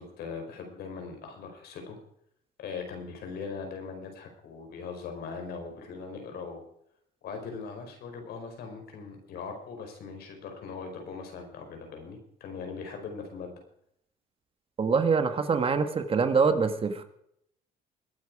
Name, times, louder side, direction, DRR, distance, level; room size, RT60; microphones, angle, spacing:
voice 1, 0.0-2.0 2.6-6.6 7.2-13.5, left 5 dB, 70° left, 4 dB, 5.0 m, -40 dB
voice 2, 14.8-17.0, right 5 dB, 35° right, 8 dB, 1.7 m, -24 dB
22.0 x 9.5 x 4.9 m, 0.72 s
cardioid pair, 110°, 17 cm